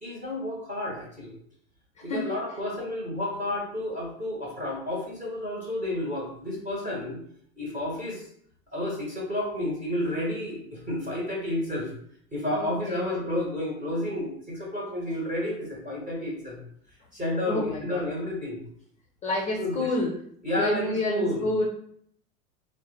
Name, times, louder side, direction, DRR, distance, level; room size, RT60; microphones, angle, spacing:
voice 1, 0.0-1.4 2.0-7.2 7.6-8.3 8.7-11.9 12.3-16.6 17.1-18.6 19.6-19.9 20.4-21.5, left 1 dB, 20° right, -3 dB, 1.1 m, -31 dB
voice 2, 2.0-2.3 12.5-13.3 17.5-18.1 19.2-20.1 20.6-21.6, left 2 dB, 15° left, -2 dB, 0.5 m, -29 dB
3.5 x 2.1 x 3.3 m, 0.63 s
figure-of-eight pair, 85°, 43 cm